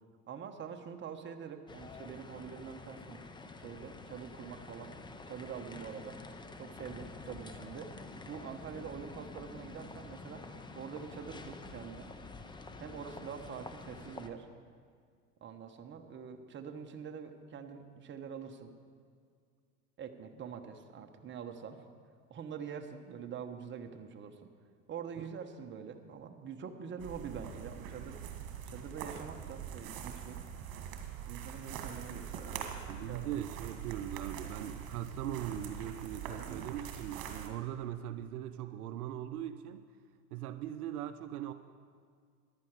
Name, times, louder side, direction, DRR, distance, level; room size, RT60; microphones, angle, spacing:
voice 1, 0.3-3.2 3.6-4.9 5.3-6.2 6.6-7.9 8.2-10.5 10.7-12.1 12.8-14.5 15.4-18.7 20.0-21.8 22.3-24.5 24.9-28.2 28.7-30.4 31.3-32.8 33.1-33.7 36.4-36.6, right 7 dB, 25° right, 5 dB, 1.1 m, -45 dB
sound 1, 1.7-14.3, left 3 dB, 10° left, 0.6 m, -48 dB
sound 2, 27.0-37.5, right 8 dB, 45° right, 1.8 m, -43 dB
voice 2, 32.9-39.9 40.3-41.5, right 12 dB, 70° right, 10 dB, 0.7 m, -40 dB
14.0 x 11.0 x 4.8 m, 2.1 s
hypercardioid pair, 90°, 47 cm